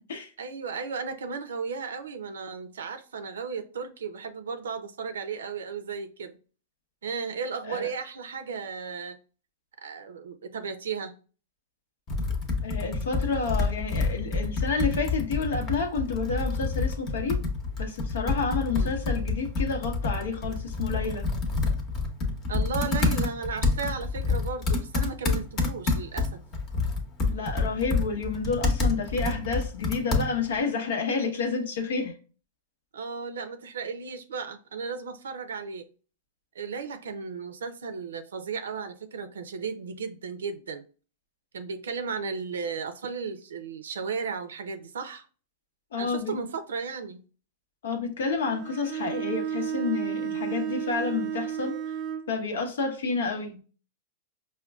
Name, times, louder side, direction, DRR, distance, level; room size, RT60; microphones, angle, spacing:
voice 1, 0.4-6.4 7.0-9.2 9.8-11.1 18.7-19.0 22.5-26.4 32.9-35.9 36.5-40.8 41.5-45.2 46.0-47.2, right 5 dB, 90° right, 0.5 m, -35 dB
Computer keyboard, 12.1-30.6, left 3 dB, 35° left, 0.8 m, -28 dB
voice 2, 12.6-17.4 17.8-21.3 27.3-32.1 45.9-46.4 47.8-51.8 52.3-53.6, left 4 dB, 80° left, 0.8 m, -30 dB
Bowed string instrument, 48.4-52.3, right 9 dB, 35° right, 0.5 m, -32 dB
4.9 x 2.2 x 2.2 m
hypercardioid pair, 130°, 0 cm